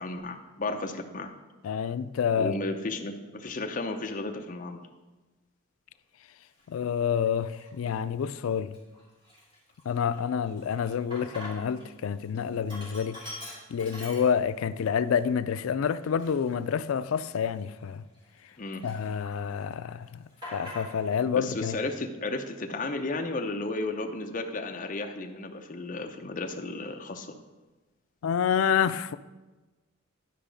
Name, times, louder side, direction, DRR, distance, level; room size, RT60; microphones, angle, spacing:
voice 1, 0.0-1.3 2.3-4.8 18.6-18.9 21.3-27.4, left 2 dB, 40° left, 0.6 m, -34 dB
voice 2, 1.6-2.5 6.7-8.8 9.9-13.3 13.7-18.0 18.8-20.1 20.5-21.8 28.2-29.2, left 7 dB, 75° left, 0.3 m, -28 dB
Sink (filling or washing), 6.6-6.8 7.4-8.0 8.3-8.4 8.7-11.9 12.2-14.7 15.2-15.3 16.0-18.5 18.8-19.6 19.9-21.2, left 1 dB, 20° right, 3.0 m, -45 dB
11.0 x 4.8 x 5.1 m
head